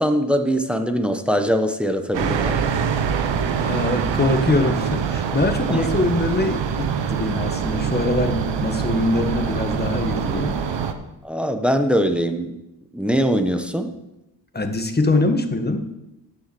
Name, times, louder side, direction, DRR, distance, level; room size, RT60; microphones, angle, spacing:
voice 1, 0.0-2.8 5.7-5.9 11.2-12.6 12.9-13.9, equal, ahead, 7 dB, 1.1 m, -22 dB
sound 1, 2.1-10.9, right 7 dB, 70° right, 1.0 m, -24 dB
voice 2, 3.6-10.6 14.5-15.8, left 2 dB, 20° left, 6 dB, 1.5 m, -23 dB
9.9 x 6.4 x 7.0 m, 0.91 s
cardioid pair, 60°, 44 cm